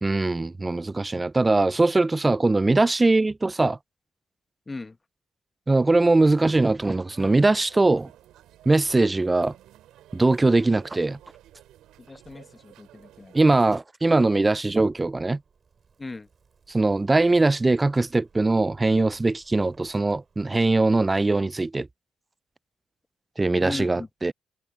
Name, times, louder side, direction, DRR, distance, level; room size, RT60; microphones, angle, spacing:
voice 1, 0.0-3.8 5.7-8.1 8.7-9.5 10.1-11.2 13.3-15.4 16.7-21.9 23.4-24.3, right 2 dB, 20° right, 0.3 m, -21 dB
voice 2, 4.7-5.0 12.1-13.3 16.0-16.3 23.6-24.1, left 3 dB, 20° left, 1.0 m, -37 dB
sound 1, 7.1-13.8, right 13 dB, 85° right, 7.3 m, -53 dB
Zipper (clothing), 14.3-20.9, right 5 dB, 40° right, 6.3 m, -61 dB
cardioid pair, 90°, 0 cm